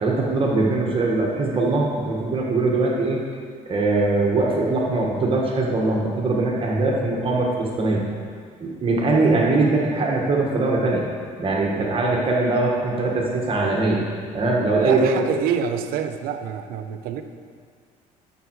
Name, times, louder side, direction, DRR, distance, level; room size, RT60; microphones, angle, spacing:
voice 1, 0.0-3.2 3.7-8.0 8.6-11.0 11.4-14.0 14.3-15.2, right 3 dB, 35° right, -2 dB, 1.6 m, -21 dB
voice 2, 14.8-17.2, right 8 dB, 75° right, 8 dB, 0.7 m, -27 dB
12.0 x 6.5 x 4.7 m, 2.1 s
cardioid pair, 105°, 15 cm